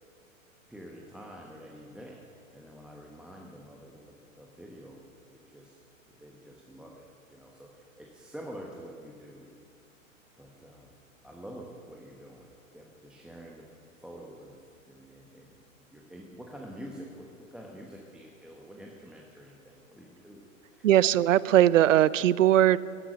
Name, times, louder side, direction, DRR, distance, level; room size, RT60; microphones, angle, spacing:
voice 1, 0.7-5.0 5.3-5.8 6.2-9.5 10.4-10.9 11.2-13.7 14.0-14.6 14.9-15.5 15.9-20.4 20.7-20.8, equal, ahead, -2 dB, 1.1 m, -47 dB
voice 2, 20.8-22.8, right 12 dB, 70° right, 20 dB, 0.6 m, -20 dB
13.5 x 11.0 x 6.3 m, 2.4 s
hypercardioid pair, 110°, 40 cm